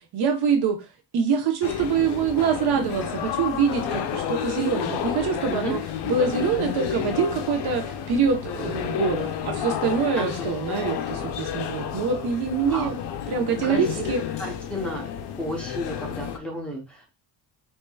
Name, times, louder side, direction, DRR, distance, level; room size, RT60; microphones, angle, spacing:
voice 1, 0.1-0.8 1.1-5.8 6.0-12.9 13.3-14.2, right 6 dB, 65° right, 4 dB, 1.0 m, -25 dB
sound 1, 1.6-16.4, left 9 dB, 75° left, 0.6 m, -31 dB
voice 2, 10.2-10.5 12.7-12.9 13.6-14.0 14.4-15.1 15.4-17.1, equal, 5° left, -3 dB, 0.8 m, -32 dB
4.6 x 2.9 x 2.3 m, 0.26 s
cardioid pair, 170°, 42 cm